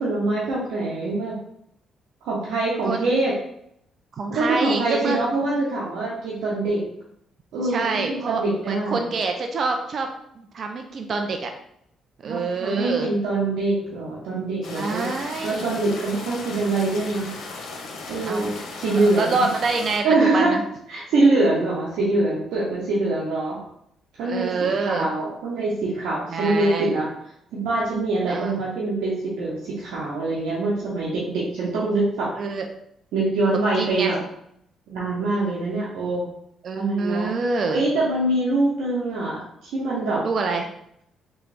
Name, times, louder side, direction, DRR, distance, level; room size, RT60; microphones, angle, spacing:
voice 1, 0.0-1.4 2.2-3.3 4.3-6.8 7.5-9.0 12.2-15.1 15.4-17.3 18.1-19.5 20.0-20.6 20.9-23.6 24.2-27.1 27.5-32.3 33.1-34.2 34.9-36.3 36.8-37.3 37.7-40.2, right 2 dB, 85° right, -6 dB, 0.8 m, -24 dB
voice 2, 4.2-5.2 7.6-10.1 10.4-11.5 12.2-13.1 14.7-15.7 18.3-18.5 18.9-20.0 20.3-20.6 24.3-25.1 26.3-27.0 28.3-28.6 32.4-32.7 33.7-34.1 36.6-37.8 40.2-40.7, right 3 dB, 55° right, 4 dB, 0.4 m, -26 dB
sound 1, 14.6-20.0, left 3 dB, 80° left, 0.8 m, -36 dB
3.4 x 3.1 x 3.3 m, 0.74 s
cardioid pair, 90°, 0 cm